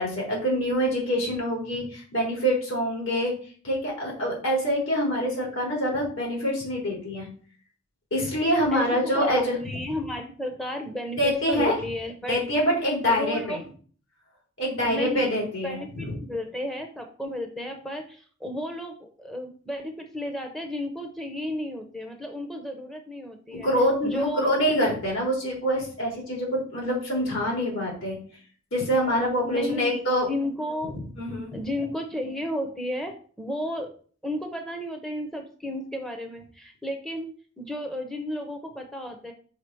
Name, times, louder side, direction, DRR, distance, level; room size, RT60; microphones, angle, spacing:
voice 1, 0.0-3.3 3.6-7.3 8.1-9.6 11.2-11.8 12.3-13.6 14.6-16.1 23.5-28.2 28.7-30.3 31.2-31.6, equal, 70° left, -2 dB, 3.8 m, -25 dB
voice 2, 8.7-12.4 13.0-13.7 14.8-23.7 24.0-24.5 29.4-30.0 30.3-31.0 31.5-33.9 34.2-37.3 37.6-39.3, left 1 dB, ahead, 4 dB, 0.8 m, -33 dB
6.5 x 3.8 x 6.2 m, 0.43 s
head